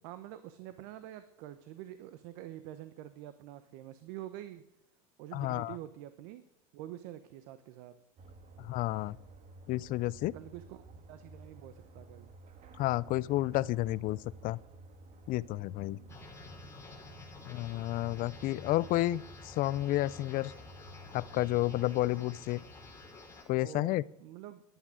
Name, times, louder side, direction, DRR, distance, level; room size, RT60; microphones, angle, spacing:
voice 1, 0.0-4.6 5.2-6.4 6.7-7.9 10.3-12.4 15.7-16.2 23.6-24.6, right 13 dB, 65° right, 12 dB, 1.0 m, -47 dB
voice 2, 5.3-5.7 8.6-9.2 9.7-10.3 12.8-14.6 15.3-16.0 17.5-20.5 21.1-22.6 23.5-24.0, left 16 dB, 50° left, 21 dB, 0.5 m, -31 dB
sound 1, 8.2-22.0, right 2 dB, 40° right, 1.6 m, -53 dB
sound 2, 16.1-23.4, left 3 dB, 15° left, 4.2 m, -51 dB
11.5 x 10.0 x 8.8 m, 0.83 s
supercardioid pair, 110°, 19 cm